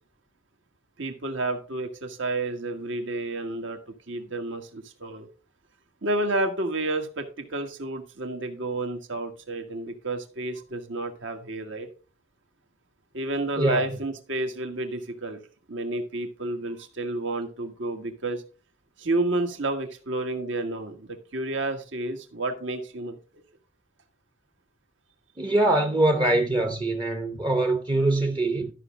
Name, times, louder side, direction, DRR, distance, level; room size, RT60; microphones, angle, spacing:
voice 1, 1.0-3.8 4.1-5.3 6.0-11.9 13.1-15.4 15.7-18.4 19.0-23.4, right 2 dB, 65° right, 1.5 m, -30 dB
voice 2, 13.6-13.9 25.4-28.7, right 2 dB, 20° right, 0.7 m, -23 dB
12.5 x 6.0 x 3.6 m
head